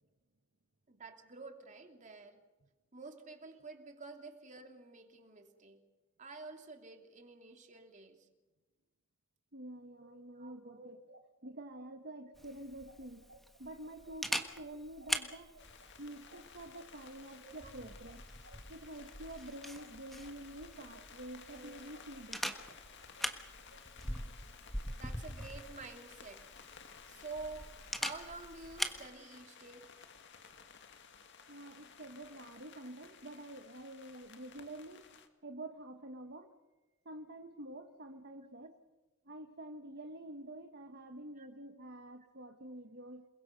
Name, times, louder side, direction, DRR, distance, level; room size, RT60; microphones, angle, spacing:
voice 1, 0.9-2.4 2.9-5.8 6.2-8.3 10.0-10.9 17.4-17.7 21.5-21.8 24.0-24.2 24.9-26.5 27.1-29.9 41.4-41.5, right 3 dB, 35° right, 4 dB, 2.9 m, -50 dB
voice 2, 9.5-11.0 11.4-13.3 13.6-15.5 16.0-18.2 18.7-22.6 31.5-35.1 35.4-36.5 37.0-38.8 39.2-43.3, right 1 dB, 55° right, 5 dB, 1.4 m, -48 dB
sound 1, 10.9-20.3 20.7-23.8, right 2 dB, 75° right, 2.0 m, -61 dB
Camera, 12.4-29.1, equal, ahead, 1.4 m, -43 dB
sound 2, 15.6-35.3, left 6 dB, 60° left, 1.9 m, -56 dB
28.5 x 22.0 x 5.3 m, 1.2 s
head